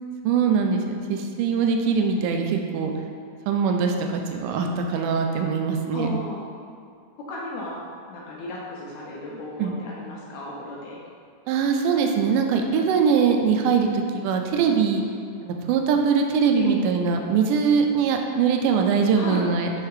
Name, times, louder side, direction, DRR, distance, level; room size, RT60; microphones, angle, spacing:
voice 1, 0.2-0.8 1.1-2.9 3.5-6.1 9.6-9.7 11.5-15.0 15.4-19.7, right 6 dB, 80° right, 3 dB, 2.1 m, -22 dB
voice 2, 5.9-6.5 7.2-7.8 8.1-11.0 16.6-16.8 19.2-19.5, left 1 dB, 75° left, -4 dB, 1.8 m, -33 dB
6.6 x 3.5 x 4.7 m, 2.2 s
omnidirectional pair, 3.9 m